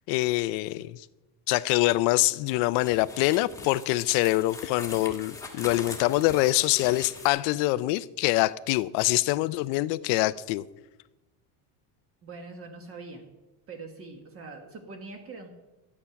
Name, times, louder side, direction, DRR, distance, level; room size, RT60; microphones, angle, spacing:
voice 1, 0.1-1.1 1.5-10.6, left 18 dB, 75° left, 0.6 m, -25 dB
sound 1, 2.5-7.3, left 3 dB, 10° left, 1.3 m, -42 dB
voice 2, 12.2-13.3 13.7-15.5, right 3 dB, 35° right, 1.4 m, -43 dB
13.5 x 8.5 x 5.8 m
cardioid pair, 165°, 41 cm